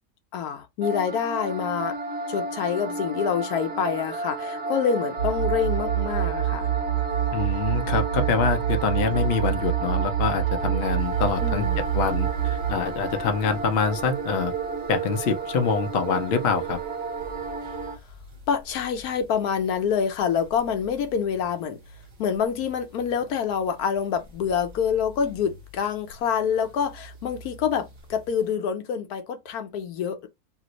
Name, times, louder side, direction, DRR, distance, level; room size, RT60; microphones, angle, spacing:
voice 1, 0.3-2.0 2.3-6.7 11.4-11.9 18.5-21.8 22.2-30.3, left 7 dB, 85° left, 1.2 m, -26 dB
sound 1, 0.8-18.0, right 3 dB, 55° right, 1.0 m, -32 dB
sound 2, 5.2-12.7, right 14 dB, 85° right, 1.1 m, -26 dB
voice 2, 7.3-14.5 14.9-16.8, left 5 dB, 60° left, 0.7 m, -25 dB
sound 3, 11.0-28.5, equal, 30° right, 1.2 m, -46 dB
2.9 x 2.5 x 2.9 m
omnidirectional pair, 1.6 m